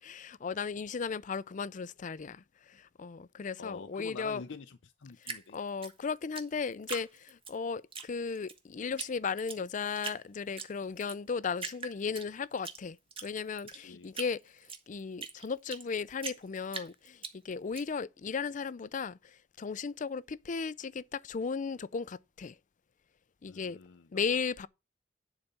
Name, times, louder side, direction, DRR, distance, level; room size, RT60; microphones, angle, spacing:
voice 1, 0.0-4.4 5.2-13.0 13.2-22.6 23.4-23.8 24.1-24.7, left 5 dB, 45° left, 0.4 m, -36 dB
voice 2, 3.6-5.6 13.7-14.1 23.5-24.2, left 4 dB, 90° left, 0.6 m, -46 dB
Drip, 5.2-7.5 7.9-8.6 9.0-9.1 9.4-10.2 10.6-11.2 11.6-12.8 13.1-15.9 16.2-17.8, right 5 dB, 30° right, 1.3 m, -41 dB
10.5 x 4.1 x 6.8 m
head